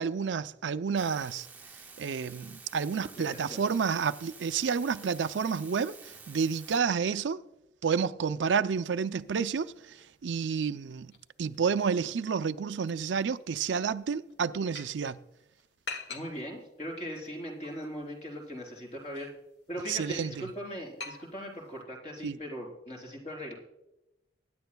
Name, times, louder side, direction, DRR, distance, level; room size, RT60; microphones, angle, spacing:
voice 1, 0.0-1.5 2.0-7.4 7.8-9.7 10.2-11.1 11.4-15.2 19.9-20.4 22.2-22.4, right 6 dB, 90° right, 0.5 m, -30 dB
sound 1, 1.0-6.8, right 4 dB, 10° right, 0.6 m, -50 dB
voice 2, 3.0-3.6 16.1-19.3 19.7-23.5, equal, 40° left, 3.8 m, -40 dB
sound 2, 8.8-21.8, left 4 dB, 75° left, 1.6 m, -49 dB
24.0 x 10.5 x 2.3 m
head